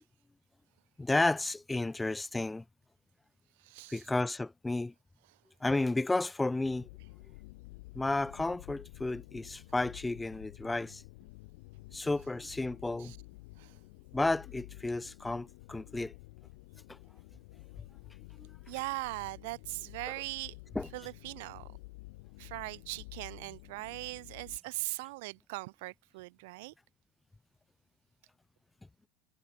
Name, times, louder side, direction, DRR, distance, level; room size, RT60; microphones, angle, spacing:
voice 1, 1.0-2.6 3.9-4.9 5.6-6.9 7.9-11.0 11.9-13.1 14.1-16.1 16.9-17.0 18.4-18.5 20.7-20.9, left 2 dB, 10° left, 1.1 m, -32 dB
voice 2, 3.6-4.0 13.0-13.2 13.6-13.8 18.7-20.5 20.9-21.7 22.4-26.7, right 24 dB, 75° right, 0.8 m, -40 dB
sound 1, 6.6-24.6, left 24 dB, 75° left, 2.0 m, -51 dB
supercardioid pair, 95°, 0 cm